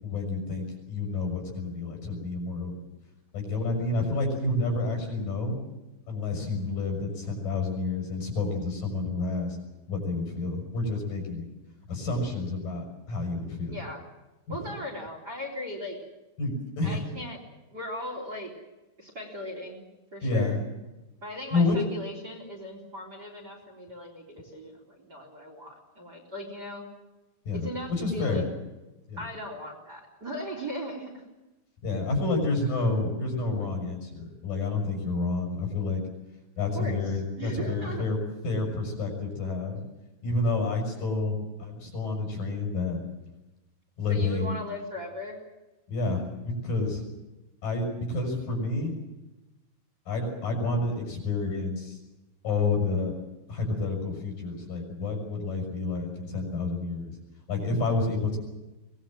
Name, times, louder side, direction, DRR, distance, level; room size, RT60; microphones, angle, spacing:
voice 1, 0.0-2.7 3.3-5.5 6.1-9.6 9.9-11.4 11.9-13.8 14.5-14.6 16.4-17.0 20.2-20.6 21.5-21.8 27.5-27.7 28.0-28.4 29.1-29.2 31.8-36.0 36.6-38.2 38.4-39.8 40.2-43.0 44.0-44.6 45.9-47.0 47.6-48.9 50.1-52.0 52.4-53.1 53.5-57.2 57.5-58.4, left 3 dB, 55° left, 2 dB, 7.9 m, -29 dB
voice 2, 13.7-14.0 14.5-16.0 16.8-17.4 17.7-18.5 19.0-19.8 20.1-20.6 21.2-26.9 27.5-28.4 29.2-31.3 36.7-38.0 44.1-45.4, equal, 25° right, 2 dB, 4.0 m, -38 dB
24.0 x 20.5 x 7.6 m, 1.0 s
omnidirectional pair, 4.6 m